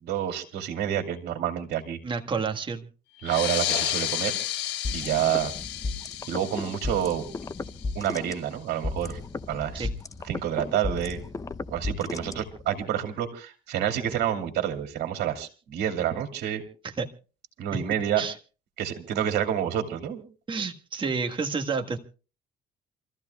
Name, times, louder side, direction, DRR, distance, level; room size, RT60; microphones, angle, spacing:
voice 1, 0.0-2.0 3.2-4.3 4.9-5.5 6.3-7.2 7.9-9.2 9.5-9.9 10.3-11.2 11.7-16.6 17.6-18.2 18.8-20.2, right 10 dB, 75° right, 5 dB, 2.6 m, -28 dB
voice 2, 2.0-2.9 9.8-9.9 16.8-17.1 18.2-18.3 20.5-22.0, right 5 dB, 30° right, 4 dB, 1.5 m, -29 dB
sound 1, 3.2-8.3, left 12 dB, 80° left, 1.2 m, -32 dB
sound 2, 4.8-12.8, left 3 dB, 20° left, 0.6 m, -35 dB
28.0 x 14.5 x 2.3 m, 0.35 s
cardioid pair, 110°, 17 cm